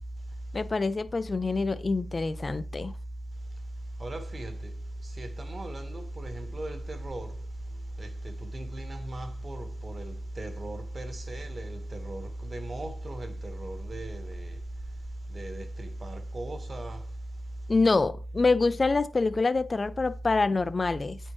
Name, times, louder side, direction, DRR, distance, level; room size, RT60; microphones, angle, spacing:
voice 1, 0.5-2.9 17.7-21.2, left 3 dB, 30° left, 0.5 m, -26 dB
voice 2, 4.0-4.7 5.0-7.3 8.0-14.6 15.3-17.0, right 1 dB, 30° right, 1.4 m, -37 dB
8.8 x 4.4 x 3.1 m
cardioid pair, 95°, 0 cm